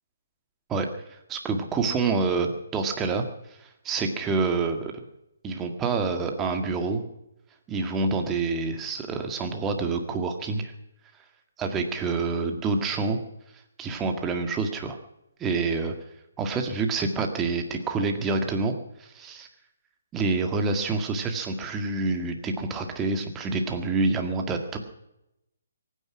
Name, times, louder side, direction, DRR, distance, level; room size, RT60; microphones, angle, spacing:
voice 1, 0.7-3.2 3.6-4.9 5.4-7.0 7.7-10.7 11.6-13.2 13.8-15.0 15.4-15.9 16.4-18.7 19.0-19.5 20.1-24.8, right 4 dB, 15° right, 5 dB, 1.9 m, -27 dB
23.5 x 9.8 x 5.9 m, 0.85 s
figure-of-eight pair, 140°, 0 cm